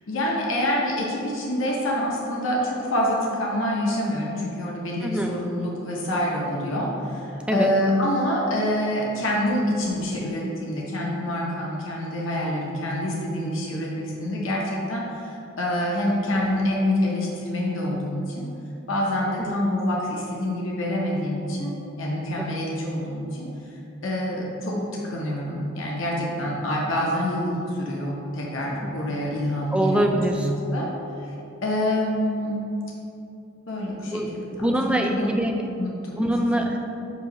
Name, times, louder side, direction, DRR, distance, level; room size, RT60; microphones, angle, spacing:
voice 1, 0.1-18.4 18.9-23.5 24.0-30.0 30.3-30.9 31.6-32.6 33.7-35.3 35.8-36.5, left 1 dB, 70° left, -3 dB, 0.9 m, -26 dB
voice 2, 5.0-5.3 7.5-7.7 22.4-22.5 28.8-28.9 29.7-30.5 34.1-35.6 36.2-36.8, right 1 dB, 5° right, 2 dB, 0.4 m, -24 dB
7.8 x 2.9 x 5.3 m, 2.8 s
head